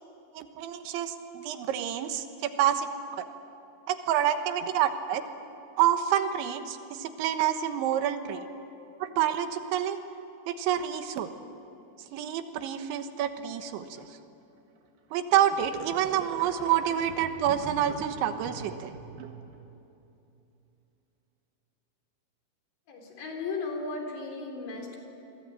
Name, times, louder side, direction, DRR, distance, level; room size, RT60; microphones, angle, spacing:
voice 1, 0.3-3.3 3.9-5.2 5.8-8.5 9.0-10.0 10.5-11.3 12.1-14.2 15.1-18.9, right 10 dB, 85° right, 8 dB, 3.6 m, -28 dB
sound 1, 14.8-14.9 15.5-19.7, right 5 dB, 65° right, 3.4 m, -44 dB
voice 2, 22.9-25.0, left 3 dB, 70° left, 1 dB, 6.0 m, -36 dB
28.5 x 22.0 x 9.0 m, 2.8 s
omnidirectional pair, 5.2 m